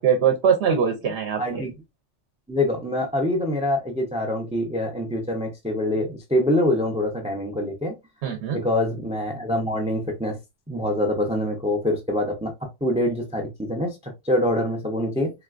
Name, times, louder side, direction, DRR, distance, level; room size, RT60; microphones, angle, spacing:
voice 1, 0.0-1.7 8.2-8.6, right 7 dB, 65° right, 0.8 m, -22 dB
voice 2, 1.4-1.7 2.5-7.9 8.5-10.4 10.7-12.5 12.8-15.3, left 1 dB, 10° right, 0.3 m, -25 dB
3.8 x 2.3 x 2.3 m
omnidirectional pair, 1.3 m